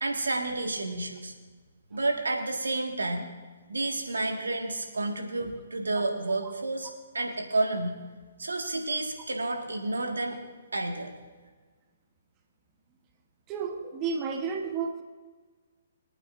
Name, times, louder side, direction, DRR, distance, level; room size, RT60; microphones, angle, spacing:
voice 1, 0.0-1.3 1.9-3.3 3.7-8.0 8.4-10.4 10.7-11.1, right 2 dB, 85° right, 3 dB, 1.7 m, -30 dB
voice 2, 13.5-15.0, right 5 dB, 25° right, 4 dB, 1.1 m, -32 dB
24.0 x 9.0 x 2.6 m, 1.4 s
hypercardioid pair, 135°, 0 cm